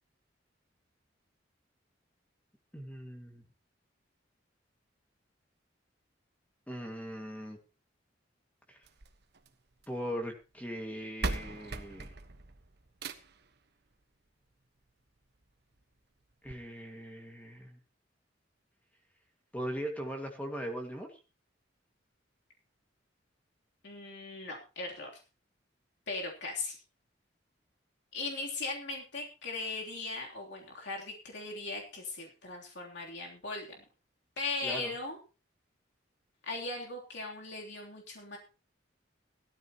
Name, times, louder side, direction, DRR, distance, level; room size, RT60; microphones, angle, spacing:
voice 1, 2.7-3.4 6.7-7.6 8.7-8.8 9.9-12.1 16.4-17.8 19.5-21.2 34.6-34.9, equal, 10° left, 3 dB, 2.0 m, -39 dB
sound 1, 8.8-10.0 10.9-11.0 11.2-13.5 14.8-14.9 15.4-15.5 15.8-15.9 16.5-16.6, right 3 dB, 60° right, 1.2 m, -39 dB
voice 2, 23.8-25.1 26.1-26.8 28.1-33.8 34.4-35.2 36.4-38.4, left 3 dB, 65° left, -1 dB, 3.2 m, -38 dB
17.5 x 13.0 x 3.0 m, 0.32 s
head